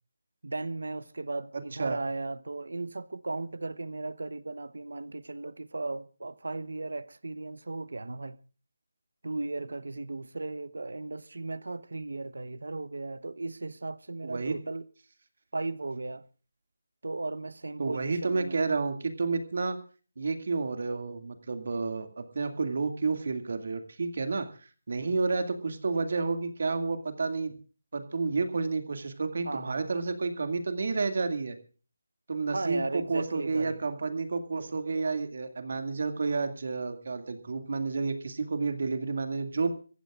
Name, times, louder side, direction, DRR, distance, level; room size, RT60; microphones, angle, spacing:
voice 1, 0.4-8.4 9.2-14.8 15.5-16.2 17.0-18.6 29.4-29.9 32.5-33.8, right 2 dB, 80° right, 1.0 m, -36 dB
voice 2, 14.2-14.6 17.8-19.8 20.2-24.5 24.9-27.6 27.9-31.6 32.3-39.7, right 4 dB, 55° right, 2.2 m, -30 dB
26.5 x 15.0 x 2.5 m
figure-of-eight pair, 165°, 0 cm